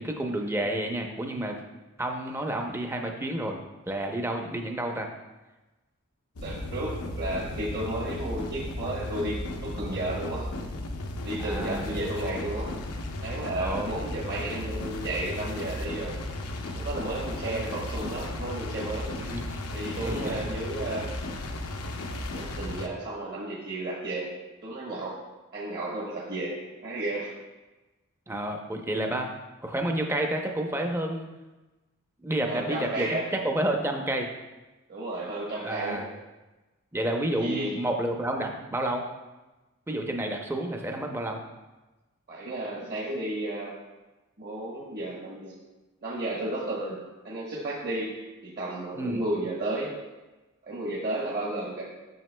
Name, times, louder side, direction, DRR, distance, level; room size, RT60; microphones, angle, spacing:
voice 1, 0.0-1.6 2.0-3.6 3.9-5.1 11.4-11.9 13.6-13.9 17.5-17.6 19.2-19.6 20.0-20.5 28.3-29.3 29.6-31.3 32.2-34.3 35.5-36.1 36.9-39.0 39.9-41.4 49.0-49.2, right 1 dB, 10° right, 3 dB, 0.6 m, -30 dB
sound 1, 6.4-22.9, left 1 dB, 85° left, 0.7 m, -35 dB
voice 2, 6.4-10.5 11.2-12.7 13.2-16.2 16.7-19.1 19.7-21.1 22.3-24.3 24.6-25.1 25.5-26.5 26.8-27.3 32.5-33.3 34.9-36.0 37.0-37.1 37.4-37.7 42.3-43.8 44.4-45.5 46.0-47.0 47.2-48.1 48.4-49.9 50.6-51.8, right 1 dB, 45° right, -6 dB, 1.1 m, -33 dB
9.1 x 6.6 x 2.2 m, 1.1 s
head